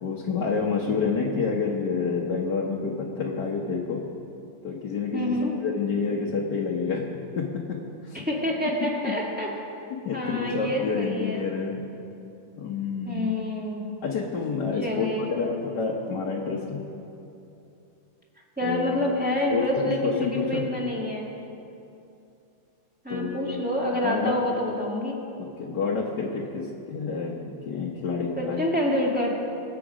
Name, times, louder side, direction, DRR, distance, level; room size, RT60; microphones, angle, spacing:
voice 1, 0.0-4.1 4.6-5.3 5.6-7.0 7.4-8.2 9.0-9.1 9.9-11.8 12.6-13.3 14.0-16.8 18.6-18.9 19.5-20.7 23.1-23.6 24.0-24.4 25.4-28.6, left 5 dB, 55° left, -2 dB, 1.6 m, -28 dB
voice 2, 5.1-5.5 8.1-9.5 10.1-11.5 13.0-13.9 14.8-15.5 18.6-21.3 23.0-25.2 28.4-29.3, left 1 dB, 5° right, -4 dB, 2.1 m, -27 dB
25.0 x 8.4 x 5.0 m, 2.8 s
omnidirectional pair, 2.4 m